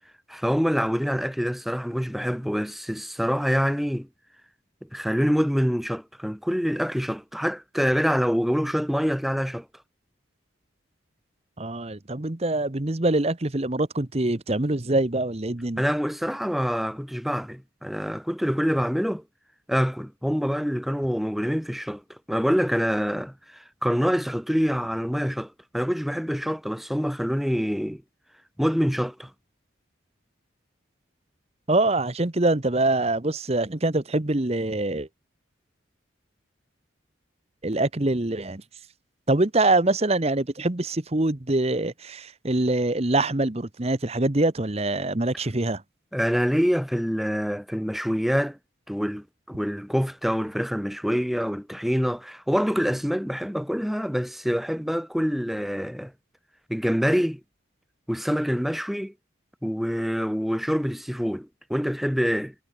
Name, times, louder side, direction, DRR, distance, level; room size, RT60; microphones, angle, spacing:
voice 1, 0.3-4.1 4.9-9.7 15.8-19.2 19.7-28.0 28.6-29.3 46.1-48.6 48.9-56.1 56.7-57.4 58.1-59.1 59.6-62.5, equal, ahead, 1.3 m, -26 dB
voice 2, 11.6-15.8 31.7-35.1 37.6-38.6 39.3-45.8, right 2 dB, 30° right, 1.0 m, -24 dB
head